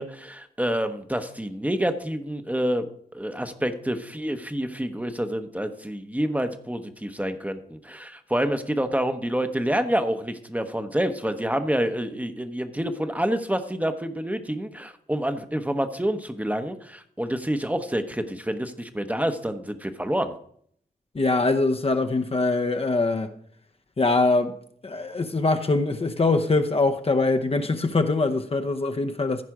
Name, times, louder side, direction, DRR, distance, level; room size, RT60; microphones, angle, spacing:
voice 1, 0.0-20.3, equal, 10° right, 0.9 m, -28 dB
voice 2, 21.1-23.3 24.0-24.6 24.8-29.4, left 3 dB, 35° left, 0.8 m, -23 dB
15.0 x 5.0 x 4.8 m
wide cardioid pair, 90°, 16 cm